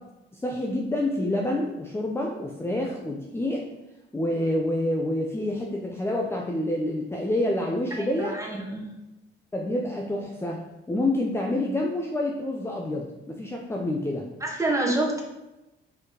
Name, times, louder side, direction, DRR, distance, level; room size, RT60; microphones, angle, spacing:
voice 1, 0.3-3.6 4.1-8.3 9.5-10.6 10.9-14.3, left 1 dB, 10° left, 0 dB, 0.7 m, -27 dB
voice 2, 8.0-8.9 14.4-15.2, right 2 dB, 15° right, -2 dB, 1.7 m, -27 dB
4.9 x 4.4 x 4.9 m, 0.99 s
cardioid pair, 90°, 20 cm